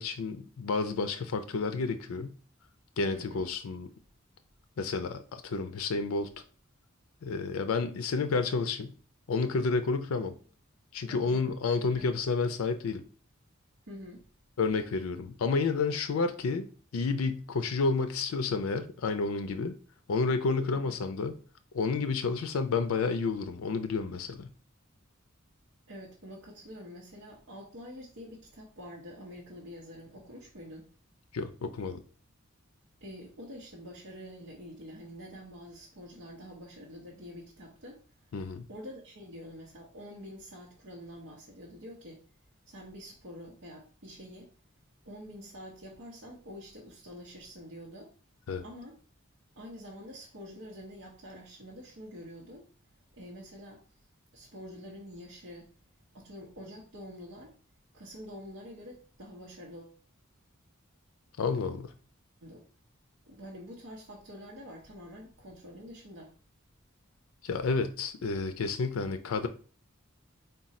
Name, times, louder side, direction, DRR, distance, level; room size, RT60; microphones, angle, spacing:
voice 1, 0.0-2.3 3.0-3.9 4.8-6.3 7.2-8.9 9.3-10.4 10.9-13.0 14.6-16.7 16.9-19.8 20.1-21.4 21.7-24.5 31.3-32.0 38.3-38.7 48.5-48.6 61.4-61.9 67.4-69.5, left 4 dB, 85° left, 0.4 m, -30 dB
voice 2, 3.1-3.4 11.1-12.1 13.9-14.2 20.7-21.0 25.9-30.9 33.0-38.0 38.7-42.2 42.7-44.5 45.0-48.1 48.6-49.0 49.5-52.7 53.1-53.8 54.3-55.7 56.1-57.5 57.9-60.0 62.4-62.6 63.3-66.3, equal, 70° right, 0.9 m, -47 dB
3.7 x 2.3 x 4.1 m
head